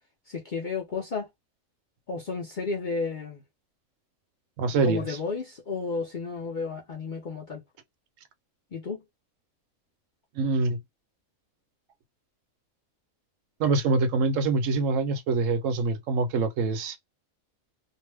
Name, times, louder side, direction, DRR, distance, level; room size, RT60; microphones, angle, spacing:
voice 1, 0.3-1.3 2.1-3.4 4.8-7.6 8.7-9.0, left 4 dB, 50° left, 0.6 m, -32 dB
voice 2, 4.6-5.2 10.4-10.8 13.6-17.0, right 3 dB, 75° right, 0.9 m, -25 dB
2.6 x 2.1 x 3.2 m
omnidirectional pair, 1.5 m